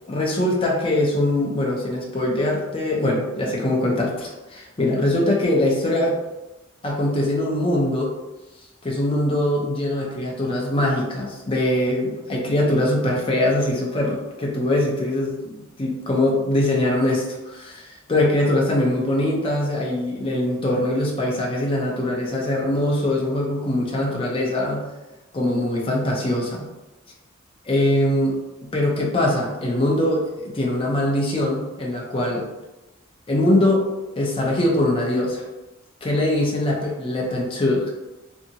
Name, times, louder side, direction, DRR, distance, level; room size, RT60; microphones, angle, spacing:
voice 1, 0.1-6.2 6.8-8.1 8.8-24.8 25.3-26.7 27.6-28.4 28.7-32.5 33.3-33.9 34.2-35.4 36.0-37.9, left 1 dB, 25° left, -2 dB, 0.5 m, -22 dB
2.7 x 2.7 x 2.6 m, 1.0 s
head